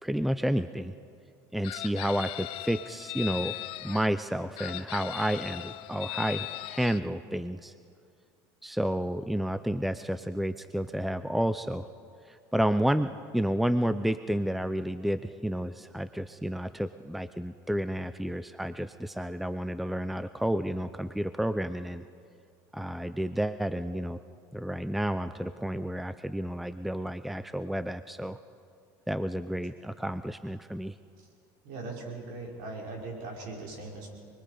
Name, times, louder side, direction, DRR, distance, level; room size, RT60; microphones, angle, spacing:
voice 1, 0.0-0.9 1.5-3.6 3.8-7.7 8.6-11.9 12.3-22.1 22.7-24.2 24.5-28.4 29.1-30.9, equal, ahead, 12 dB, 0.6 m, -31 dB
Chicken rooster, 1.6-4.1 4.6-7.0, left 18 dB, 65° left, 0.6 m, -38 dB
voice 2, 31.6-34.1, right 3 dB, 75° right, -1 dB, 5.6 m, -40 dB
28.5 x 21.5 x 5.1 m, 2.4 s
supercardioid pair, 100°, 10 cm